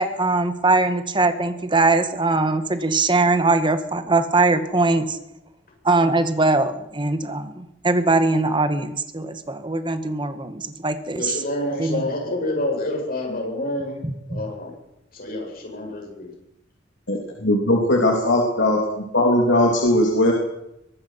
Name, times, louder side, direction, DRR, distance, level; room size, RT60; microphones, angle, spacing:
voice 1, 0.0-5.2 5.8-11.4 11.8-12.0 14.0-14.4, right 3 dB, 25° right, 9 dB, 1.8 m, -21 dB
voice 2, 11.1-14.0 14.3-14.7 15.1-16.3, left 1 dB, 50° left, 0 dB, 7.9 m, -28 dB
voice 3, 17.1-18.8 19.1-20.3, left 1 dB, 70° left, 0 dB, 3.4 m, -19 dB
23.5 x 19.5 x 5.9 m, 0.86 s
head